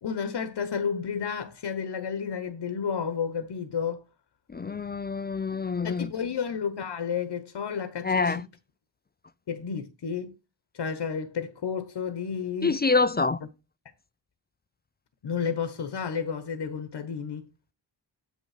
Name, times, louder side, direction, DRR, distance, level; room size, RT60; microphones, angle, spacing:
voice 1, 0.0-4.0 5.8-8.5 9.5-10.3 10.7-12.8 15.2-17.5, left 6 dB, 65° left, 1.1 m, -31 dB
voice 2, 4.5-6.1 8.0-8.4 12.6-13.4, left 4 dB, 20° left, 0.4 m, -26 dB
8.3 x 5.2 x 4.9 m
cardioid pair, 45°, 46 cm